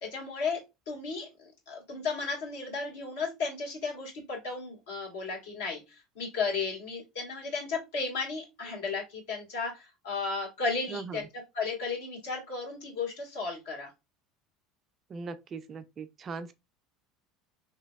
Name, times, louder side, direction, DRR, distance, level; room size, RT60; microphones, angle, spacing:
voice 1, 0.0-0.6 0.9-11.3 11.5-13.9, left 4 dB, 65° left, 1.5 m, -34 dB
voice 2, 10.9-11.2 15.1-16.5, right 5 dB, 35° right, 0.3 m, -39 dB
3.2 x 3.0 x 2.2 m
figure-of-eight pair, 70°, 0 cm